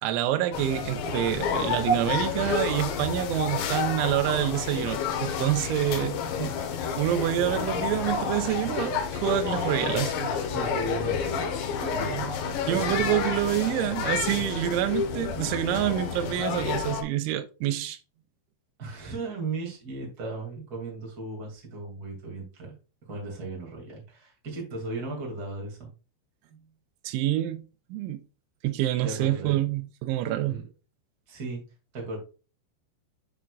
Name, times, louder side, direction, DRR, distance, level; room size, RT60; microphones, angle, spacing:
voice 1, 0.0-6.2 7.0-10.3 12.1-12.3 12.7-18.0 27.0-27.7 27.9-28.2 28.6-30.6, right 13 dB, 90° right, 3.1 m, -27 dB
sound 1, 0.5-17.0, left 6 dB, 75° left, 3.3 m, -30 dB
voice 2, 10.5-13.1 18.8-22.7 23.1-25.9 26.5-26.7 29.0-29.6 30.5-30.6 31.3-31.6 31.9-32.2, right 3 dB, 25° right, 2.2 m, -36 dB
10.5 x 4.5 x 2.5 m
omnidirectional pair, 5.3 m